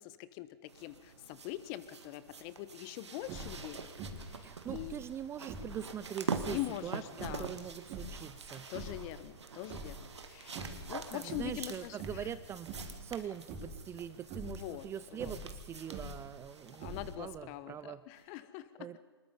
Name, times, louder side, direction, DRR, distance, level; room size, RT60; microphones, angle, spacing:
voice 1, 0.0-3.9 4.3-5.0 6.5-7.5 8.7-12.3 14.5-14.8 15.2-15.3 16.8-18.7, left 15 dB, 40° left, 15 dB, 1.1 m, -43 dB
sound 1, 0.7-17.2 18.2-18.3, right 5 dB, 85° right, 1.9 m, -46 dB
sound 2, 3.2-3.6 4.0-4.4 4.6-5.8 6.2-6.6 7.1-8.3 8.6-9.1 9.5-10.3 10.5-10.9 11.2-11.6 12.0-12.3 12.6-13.0 13.5-13.8 14.2-14.6 15.1-16.3 16.8-17.3, right 2 dB, 35° right, 4.8 m, -44 dB
voice 2, 4.4-7.0 7.3-8.7 11.1-18.0 18.3-18.4 18.8-19.0, right 9 dB, 20° right, 15 dB, 0.5 m, -43 dB
23.5 x 20.5 x 5.4 m, 1.5 s
hypercardioid pair, 125°, 14 cm